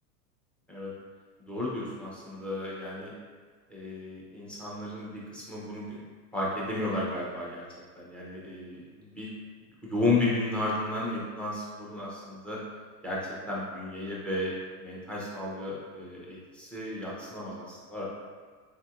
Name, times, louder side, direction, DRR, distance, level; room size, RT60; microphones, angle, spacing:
voice 1, 1.5-3.1 3.7-6.0 6.3-7.6 8.0-9.3 9.8-12.6 13.0-13.2 13.5-18.0, left 2 dB, ahead, -6 dB, 0.6 m, -33 dB
4.5 x 2.7 x 2.4 m, 1.5 s
hypercardioid pair, 110°, 48 cm